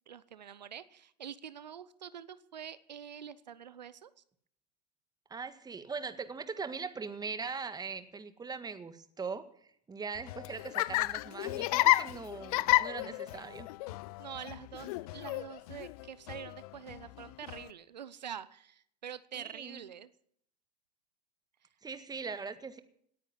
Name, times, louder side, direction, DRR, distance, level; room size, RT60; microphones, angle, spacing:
voice 1, 0.1-4.1 14.2-20.1, right 9 dB, 85° right, 16 dB, 0.7 m, -46 dB
voice 2, 5.3-9.4 9.9-13.7 19.3-19.8 21.8-22.8, right 5 dB, 20° right, 11 dB, 1.7 m, -40 dB
Laughter, 10.2-17.7, left 19 dB, 60° left, 0.6 m, -32 dB
18.5 x 9.7 x 7.3 m, 0.65 s
hypercardioid pair, 85°, 21 cm